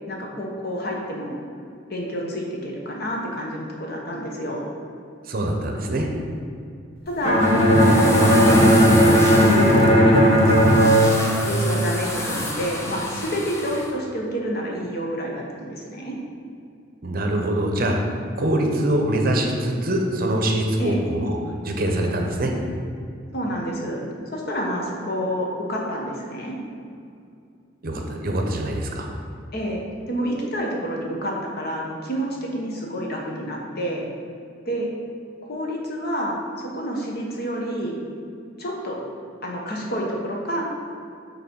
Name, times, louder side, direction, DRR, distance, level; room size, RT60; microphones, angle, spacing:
voice 1, 0.1-1.4 1.9-4.7 7.1-10.9 11.4-16.1 20.8-21.0 23.3-24.0 24.3-26.5 29.5-29.8 30.1-34.0 34.7-34.9 35.4-38.0 38.6-39.0 39.4-40.6, equal, 55° left, -1 dB, 1.3 m, -28 dB
voice 2, 5.3-6.1 17.0-18.0 18.3-21.4 21.6-22.5 27.8-29.1, right 1 dB, 50° right, 2 dB, 0.8 m, -23 dB
sound 1, 7.1-13.9, left 1 dB, 15° left, 0.8 m, -30 dB
Bowed string instrument, 7.2-12.2, equal, 30° left, 1.0 m, -16 dB
7.4 x 4.0 x 5.4 m, 2.4 s
head